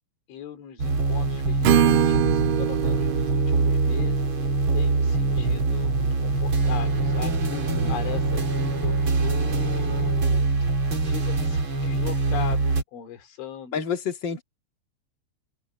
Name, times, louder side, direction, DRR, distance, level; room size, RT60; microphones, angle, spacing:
voice 1, 0.3-7.4 7.9-10.5 11.0-13.8, left 9 dB, 90° left, 5.8 m, -39 dB
sound 1, 0.8-12.8, right 3 dB, 30° right, 2.8 m, -24 dB
Acoustic guitar / Strum, 1.6-5.6, right 10 dB, 85° right, 3.5 m, -25 dB
Bowed string instrument, 6.6-10.4, right 3 dB, 70° right, 9.1 m, -36 dB
voice 2, 7.5-8.0 13.7-14.4, left 6 dB, 45° left, 1.5 m, -29 dB
open air
omnidirectional pair, 5.2 m